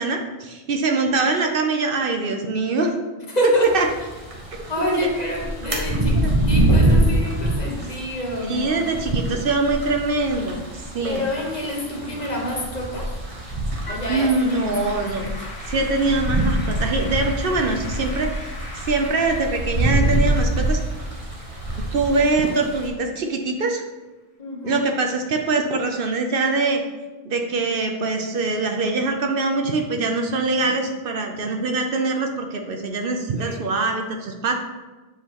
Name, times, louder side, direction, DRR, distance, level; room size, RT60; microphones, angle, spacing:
voice 1, 0.0-2.9 3.7-3.9 4.9-5.1 6.2-6.3 8.5-11.2 14.1-15.3 15.7-18.5 18.7-20.8 21.9-23.8 24.6-26.8 27.3-34.5, right 3 dB, 65° right, 3 dB, 0.8 m, -23 dB
voice 2, 3.3-3.7 4.7-8.8 11.0-13.1 13.9-15.2 24.4-24.8 33.4-33.6, left 1 dB, 45° left, -1 dB, 1.1 m, -27 dB
sound 1, 3.7-22.9, right 1 dB, 35° right, 1.1 m, -25 dB
Applause / Keyboard (musical), 13.9-23.2, left 2 dB, 90° left, 1.7 m, -41 dB
7.4 x 4.8 x 2.9 m, 1.2 s
omnidirectional pair, 1.1 m